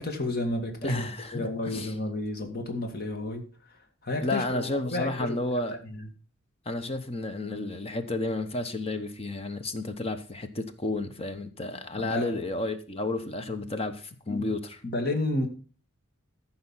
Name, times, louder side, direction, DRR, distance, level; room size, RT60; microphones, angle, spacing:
voice 1, 0.0-1.1 1.3-3.4 4.0-5.4 5.8-6.1 12.0-12.3 14.3-14.5 14.8-15.5, left 2 dB, 50° left, 2.1 m, -31 dB
voice 2, 0.8-1.9 4.2-5.8 6.7-14.8, left 2 dB, 30° left, 1.0 m, -31 dB
14.5 x 5.6 x 5.6 m
head